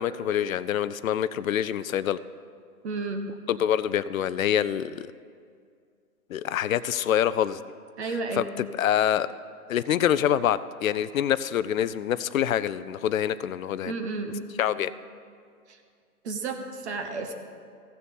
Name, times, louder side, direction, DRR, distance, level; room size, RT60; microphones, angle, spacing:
voice 1, 0.0-2.2 3.5-5.1 6.3-7.6 8.0-9.3 9.7-13.9 14.6-14.9, left 10 dB, 65° left, 16 dB, 0.6 m, -26 dB
voice 2, 2.8-3.3 8.0-8.5 13.8-14.5 15.7-15.8 16.2-17.3, right 3 dB, 45° right, 5 dB, 1.2 m, -32 dB
15.0 x 6.9 x 7.1 m, 2.2 s
hypercardioid pair, 140°, 45 cm